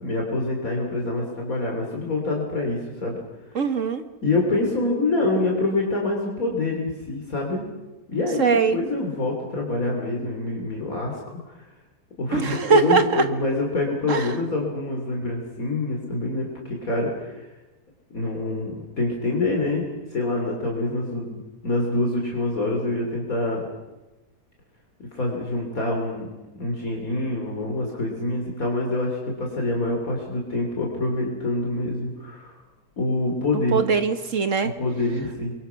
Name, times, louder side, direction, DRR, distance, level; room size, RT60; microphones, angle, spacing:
voice 1, 0.0-3.2 4.2-7.6 8.1-11.2 11.5-11.7 12.2-17.4 18.1-23.6 25.1-26.3 26.6-32.6 33.0-33.8 34.8-35.5, left 2 dB, 55° left, 0 dB, 3.8 m, -26 dB
voice 2, 3.5-4.0 8.4-8.8 12.3-13.2 14.1-14.3 33.7-34.7, right 5 dB, 50° right, 9 dB, 1.5 m, -21 dB
28.5 x 22.5 x 5.8 m, 1.1 s
omnidirectional pair, 1.8 m